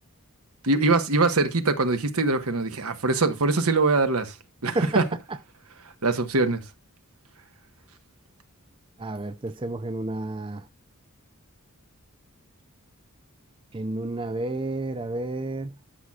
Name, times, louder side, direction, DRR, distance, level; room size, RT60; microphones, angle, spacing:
voice 1, 0.6-4.3 4.6-5.0 6.0-6.6, right 3 dB, 80° right, 1.3 m, -23 dB
voice 2, 9.0-10.6 13.7-15.7, right 2 dB, 25° right, 0.4 m, -30 dB
12.5 x 6.1 x 2.4 m
head